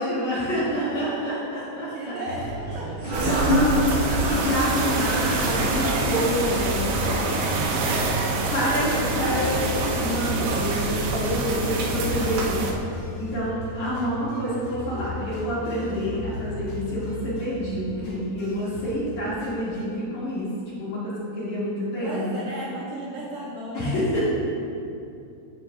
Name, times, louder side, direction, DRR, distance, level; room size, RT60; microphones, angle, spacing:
voice 1, 0.0-2.1 3.2-3.6 4.3-6.8 8.5-12.7 13.0-20.5 20.8-22.4 23.7-24.3, equal, 50° left, -10 dB, 3.2 m, -28 dB
voice 2, 0.7-3.0 22.0-24.0, right 1 dB, 70° right, -6 dB, 2.3 m, -35 dB
sound 1, 2.3-19.8, left 1 dB, 75° left, 3.8 m, -35 dB
sound 2, 3.0-8.4, left 1 dB, 55° right, 3.0 m, -27 dB
sound 3, 3.1-12.7, right 2 dB, 85° right, 2.8 m, -26 dB
11.0 x 8.1 x 2.4 m, 2.6 s
omnidirectional pair, 4.6 m